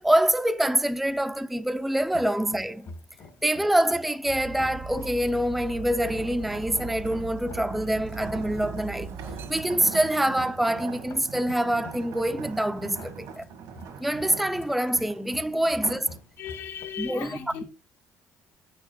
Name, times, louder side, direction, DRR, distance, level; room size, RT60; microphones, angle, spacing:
voice 1, 0.0-2.9 3.4-9.1 9.5-13.5 14.0-16.1 17.0-17.3, right 1 dB, ahead, 0.4 m, -25 dB
sound 1, 2.0-16.9, left 3 dB, 65° left, 1.7 m, -48 dB
Dog, 4.3-9.6, right 6 dB, 50° right, 0.7 m, -40 dB
sound 2, 6.0-16.2 16.6-16.9, right 6 dB, 85° right, 1.5 m, -42 dB
voice 2, 16.4-17.6, left 8 dB, 80° left, 1.5 m, -36 dB
8.8 x 6.1 x 2.5 m
supercardioid pair, 80°, 6 cm